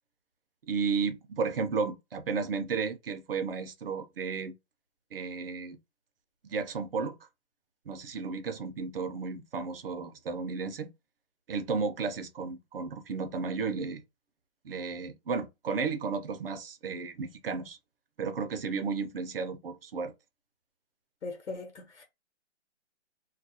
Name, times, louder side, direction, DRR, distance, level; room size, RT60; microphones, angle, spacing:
voice 1, 0.6-4.5 5.1-5.8 6.4-7.2 7.9-10.9 11.5-14.0 14.6-17.8 18.2-20.1, right 5 dB, 55° right, 0.5 m, -33 dB
voice 2, 21.2-22.0, left 3 dB, 75° left, 0.9 m, -40 dB
2.3 x 2.2 x 2.6 m
hypercardioid pair, 165°, 34 cm